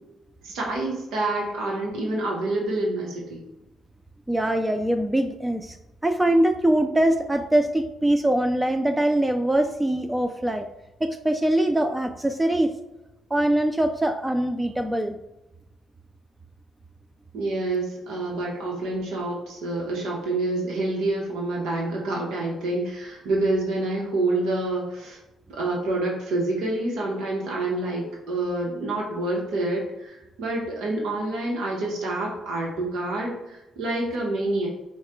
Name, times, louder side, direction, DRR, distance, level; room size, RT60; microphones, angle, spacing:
voice 1, 0.4-3.4 17.3-25.2 25.5-34.7, right 2 dB, 85° right, -2 dB, 1.0 m, -27 dB
voice 2, 4.3-5.8 6.0-10.7 11.0-12.7 13.3-15.2, right 1 dB, 10° right, 7 dB, 0.3 m, -23 dB
4.7 x 2.2 x 4.4 m, 0.95 s
cardioid pair, 90°, 0 cm